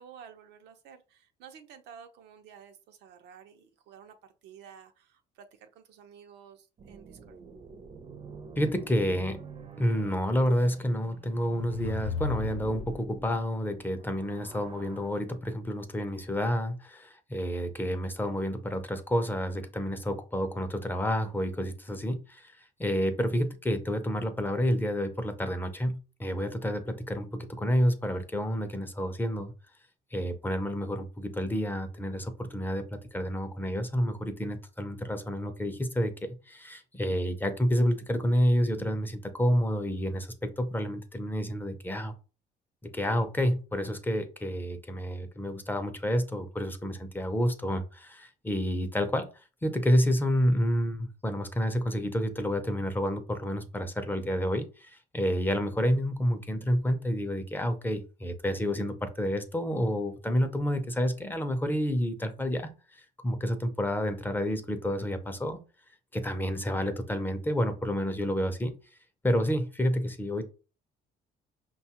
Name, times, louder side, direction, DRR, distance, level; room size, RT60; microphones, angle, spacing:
voice 1, 0.0-7.4, right 7 dB, 80° right, 0.6 m, -52 dB
sound 1, 6.8-12.8 13.8-15.1, right 5 dB, 35° right, 0.5 m, -48 dB
voice 2, 8.6-9.4 9.8-29.5 30.1-42.1 42.8-49.3 49.6-65.6 66.1-68.7 69.2-70.4, equal, 10° left, 0.5 m, -29 dB
sound 2, 11.3-13.4, left 5 dB, 75° left, 0.5 m, -36 dB
5.3 x 2.3 x 2.8 m
cardioid pair, 110°, 17 cm